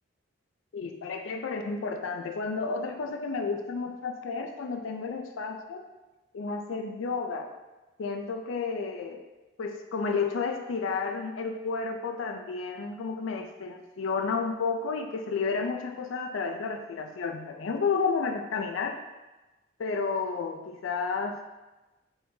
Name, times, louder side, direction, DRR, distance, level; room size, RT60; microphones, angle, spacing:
voice 1, 0.7-5.8 6.3-7.5 8.0-9.2 9.6-19.0 19.8-21.4, left 4 dB, 80° left, 4 dB, 0.4 m, -31 dB
4.3 x 2.7 x 3.6 m, 1.1 s
head